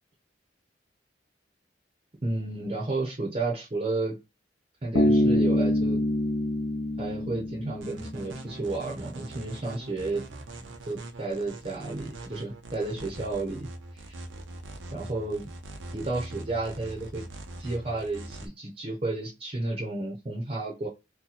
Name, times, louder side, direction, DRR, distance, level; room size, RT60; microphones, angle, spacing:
voice 1, 2.2-4.2 4.8-6.0 7.0-10.3 10.9-14.2 14.9-15.5 15.9-17.3 17.6-20.9, right 2 dB, 30° right, 0.7 m, -32 dB
Bass guitar, 5.0-8.5, left 1 dB, 70° left, 0.8 m, -25 dB
sound 1, 7.8-18.5, right 2 dB, 90° right, 0.6 m, -42 dB
2.8 x 2.2 x 4.0 m
head